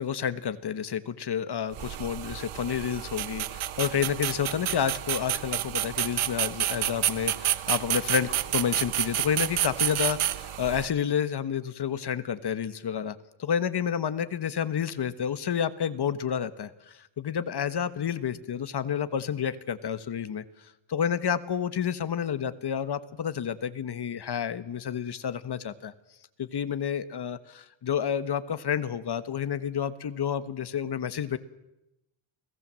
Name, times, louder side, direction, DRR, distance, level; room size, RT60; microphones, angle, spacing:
voice 1, 0.0-20.4 20.9-25.9 26.4-31.4, left 8 dB, 50° left, 13 dB, 1.3 m, -30 dB
sound 1, 1.7-10.9, right 12 dB, 80° right, 1.0 m, -30 dB
29.5 x 19.0 x 7.6 m, 0.92 s
wide cardioid pair, 160°, 50 cm